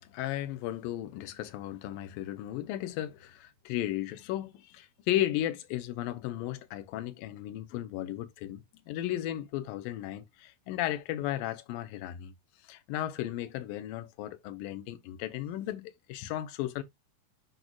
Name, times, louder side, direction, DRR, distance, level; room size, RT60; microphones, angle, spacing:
voice 1, 0.0-12.3 12.6-16.8, left 13 dB, 90° left, 2.4 m, -35 dB
10.5 x 4.0 x 2.2 m
omnidirectional pair, 3.9 m